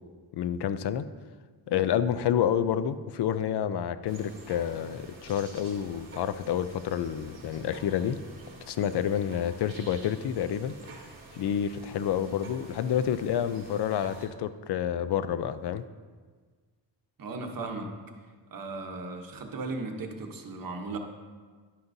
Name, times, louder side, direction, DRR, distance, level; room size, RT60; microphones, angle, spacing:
voice 1, 0.3-1.0 1.7-8.2 8.7-10.7 11.4-15.8, left 9 dB, 70° left, 13 dB, 0.5 m, -29 dB
sound 1, 4.1-14.3, right 3 dB, 30° right, 2.2 m, -49 dB
voice 2, 17.2-17.9 18.5-21.0, right 3 dB, 55° right, 3 dB, 1.1 m, -36 dB
11.0 x 9.7 x 2.7 m, 1.5 s
wide cardioid pair, 170°, 42 cm